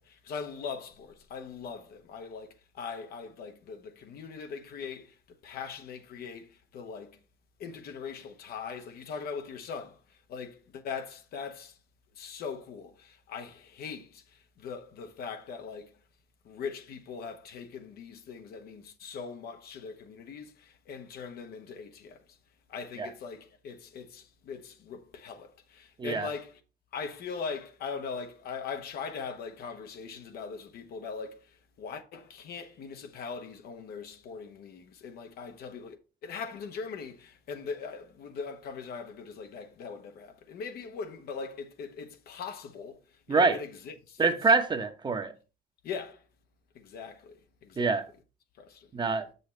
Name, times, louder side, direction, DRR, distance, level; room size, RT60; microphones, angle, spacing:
voice 1, 0.0-5.2 5.4-7.2 7.6-11.8 12.2-15.9 16.4-22.4 22.7-26.6 26.9-43.0 43.3-44.2 45.8-46.2 46.7-48.0 48.6-49.2, left 5 dB, 65° left, 1.0 m, -41 dB
voice 2, 44.2-45.3 47.8-48.1 48.9-49.3, right 4 dB, 25° right, 0.9 m, -25 dB
7.0 x 6.8 x 3.2 m
cardioid pair, 110°, 17 cm